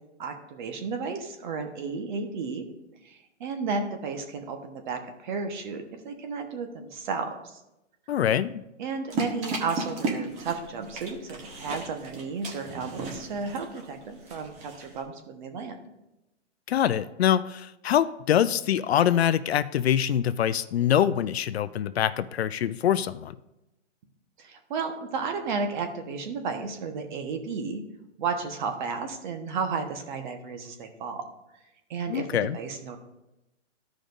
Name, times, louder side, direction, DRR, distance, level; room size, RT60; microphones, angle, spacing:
voice 1, 0.2-2.7 3.0-7.6 8.8-15.8 24.4-27.8 28.2-31.2 31.9-33.0, right 4 dB, 40° right, 5 dB, 1.2 m, -33 dB
voice 2, 8.1-8.6 16.7-23.4 32.1-32.6, left 10 dB, 60° left, 14 dB, 0.5 m, -24 dB
sound 1, 9.1-15.0, right 3 dB, 20° right, 1.1 m, -35 dB
15.0 x 5.1 x 2.6 m, 0.92 s
hypercardioid pair, 145°, 36 cm